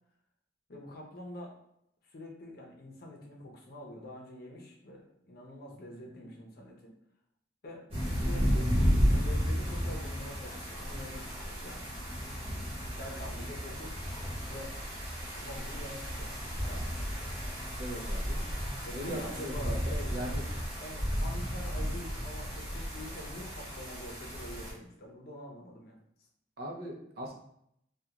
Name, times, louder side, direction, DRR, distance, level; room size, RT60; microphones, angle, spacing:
voice 1, 0.7-1.5 2.1-6.9 7.6-7.8 8.2-8.7 9.1-11.9 12.9-14.0 14.5-14.8 15.4-16.9 18.9-20.5 20.8-26.0, left 1 dB, 55° left, 0 dB, 0.6 m, -45 dB
sound 1, 7.9-24.7, equal, 30° right, 1.0 m, -33 dB
voice 2, 17.8-18.4 18.9-20.4 26.6-27.3, equal, 60° right, -1 dB, 0.6 m, -39 dB
2.4 x 2.2 x 2.8 m, 0.74 s
head